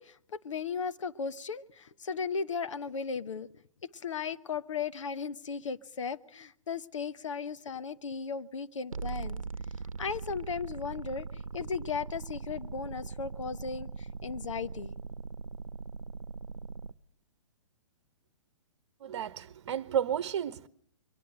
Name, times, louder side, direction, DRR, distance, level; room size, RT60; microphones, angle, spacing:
voice 1, 0.0-3.5 3.8-9.4 10.0-14.9, left 5 dB, 70° left, 1.1 m, -36 dB
sound 1, 8.9-16.9, right 4 dB, 85° right, 0.8 m, -40 dB
voice 2, 19.0-20.7, right 9 dB, 55° right, 1.0 m, -32 dB
23.5 x 19.0 x 7.8 m
figure-of-eight pair, 120°, 17 cm